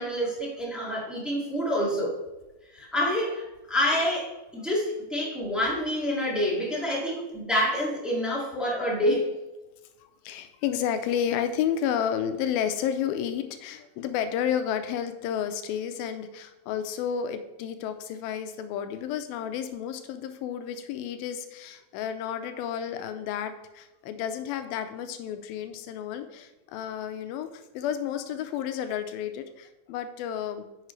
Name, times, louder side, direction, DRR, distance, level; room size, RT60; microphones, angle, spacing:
voice 1, 0.0-2.2 2.7-3.4 3.7-9.3, equal, ahead, -6 dB, 1.1 m, -27 dB
voice 2, 10.0-30.7, left 9 dB, 90° left, 9 dB, 2.4 m, -31 dB
9.4 x 6.7 x 3.2 m, 1.0 s
omnidirectional pair, 4.2 m